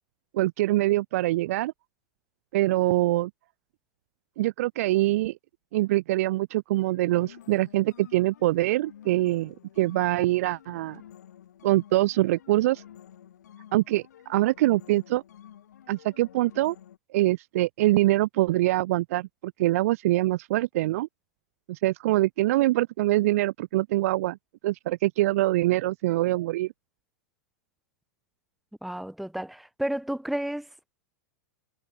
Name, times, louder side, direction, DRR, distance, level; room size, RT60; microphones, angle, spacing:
voice 1, 0.3-1.7 2.5-3.3 4.4-5.4 5.7-11.0 11.6-12.8 13.7-15.2 15.9-16.8 17.1-21.1 21.7-24.4 24.6-26.7, right 17 dB, 60° right, 0.5 m, -24 dB
sound 1, 6.8-17.0, left 10 dB, 85° left, 4.9 m, -50 dB
voice 2, 28.8-30.7, right 1 dB, ahead, 0.9 m, -31 dB
supercardioid pair, 145°, 9 cm